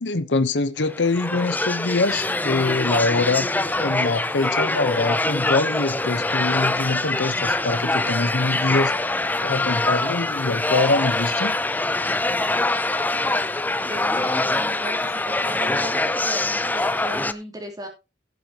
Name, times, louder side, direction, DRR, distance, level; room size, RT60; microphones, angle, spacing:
voice 1, 0.0-3.5 3.8-11.5, left 3 dB, 85° left, 1.0 m, -24 dB
sound 1, 0.8-17.3, left 2 dB, 10° left, 0.5 m, -24 dB
voice 2, 13.8-17.9, equal, 20° right, 3.4 m, -36 dB
16.0 x 8.0 x 2.9 m
head